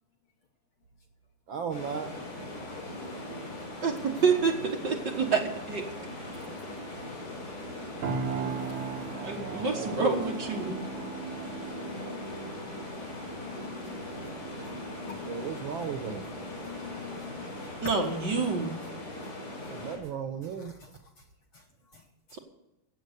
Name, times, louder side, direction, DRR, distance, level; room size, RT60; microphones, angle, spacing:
voice 1, 1.5-2.2 8.3-8.6 9.0-10.2 15.3-16.3 19.7-20.7, right 7 dB, 85° right, 6 dB, 1.1 m, -36 dB
sound 1, 1.7-20.0, left 1 dB, 80° left, 7.5 m, -40 dB
voice 2, 3.8-5.8 9.1-10.8 17.8-18.7, right 4 dB, 45° right, 2 dB, 1.7 m, -28 dB
sound 2, 8.0-17.8, right 6 dB, 65° right, 3.1 m, -39 dB
voice 3, 10.6-17.9 20.4-20.9 21.5-21.6 21.9-22.0 22.3-22.4, left 7 dB, 60° left, 3 dB, 1.4 m, -47 dB
16.0 x 7.6 x 6.8 m, 0.92 s
omnidirectional pair, 3.5 m